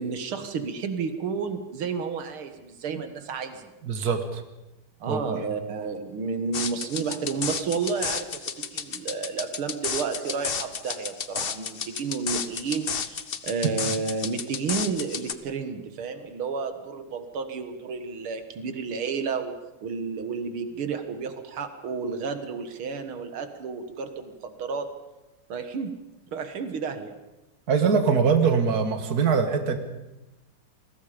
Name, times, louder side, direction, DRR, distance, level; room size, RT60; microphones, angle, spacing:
voice 1, 0.0-3.7 5.0-24.9 25.5-25.9 26.3-27.2, right 5 dB, 85° right, 8 dB, 2.5 m, -31 dB
voice 2, 3.8-4.4 5.1-5.4 27.7-29.8, right 5 dB, 50° right, 7 dB, 2.3 m, -23 dB
sound 1, 6.5-15.3, left 6 dB, 50° left, 0.7 m, -32 dB
29.0 x 21.0 x 5.2 m, 0.98 s
omnidirectional pair, 2.3 m